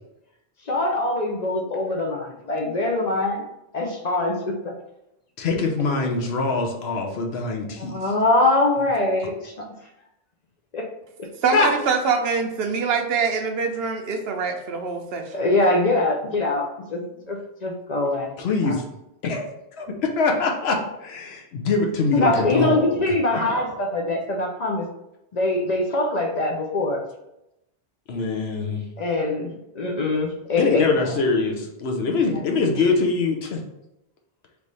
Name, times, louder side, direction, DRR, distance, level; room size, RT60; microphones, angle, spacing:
voice 1, 0.7-3.4 3.7-4.3 4.6-4.7 7.8-9.7 10.7-10.9 15.3-16.6 16.9-17.0 17.3-18.3 18.7-18.8 22.1-24.9 25.3-27.0 29.0-30.9 32.3-32.4, left 2 dB, 50° left, 1 dB, 0.6 m, -23 dB
voice 2, 5.4-7.9 11.5-11.7 18.4-18.8 19.2-19.5 19.8-23.7 28.1-28.8 30.6-33.6, left 4 dB, 75° left, 3 dB, 1.0 m, -24 dB
voice 3, 11.4-15.3, right 5 dB, 70° right, 4 dB, 0.8 m, -24 dB
3.4 x 3.1 x 3.9 m, 0.87 s
omnidirectional pair, 1.1 m